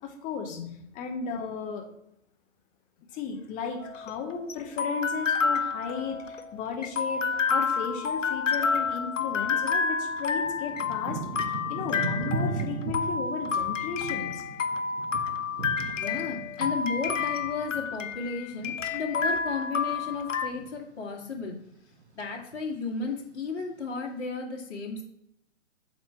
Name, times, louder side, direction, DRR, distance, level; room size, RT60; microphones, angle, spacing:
voice 1, 0.0-0.6 0.9-1.9 3.1-7.2 7.5-14.4, left 6 dB, 20° left, 4 dB, 1.0 m, -35 dB
sound 1, 3.8-20.5, left 5 dB, 80° left, 0.9 m, -29 dB
Thunder / Rain, 9.3-9.4 10.1-19.6 19.9-20.8 21.3-21.7 21.9-22.8 23.4-23.5, right 3 dB, 60° right, 1.3 m, -37 dB
voice 2, 15.9-21.6 22.2-25.0, left 5 dB, 60° left, -1 dB, 2.0 m, -34 dB
8.1 x 3.6 x 4.5 m, 0.78 s
figure-of-eight pair, 125°, 37 cm